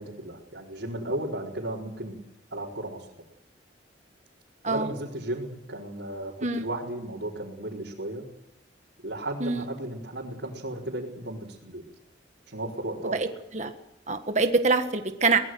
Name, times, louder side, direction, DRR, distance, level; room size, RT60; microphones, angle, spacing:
voice 1, 0.0-2.2 2.5-3.1 4.7-8.3 9.0-11.8 12.5-13.2, right 1 dB, 70° right, -6 dB, 4.5 m, -34 dB
voice 2, 14.1-15.4, right 3 dB, 40° right, 7 dB, 1.6 m, -24 dB
23.0 x 20.0 x 7.9 m, 0.83 s
head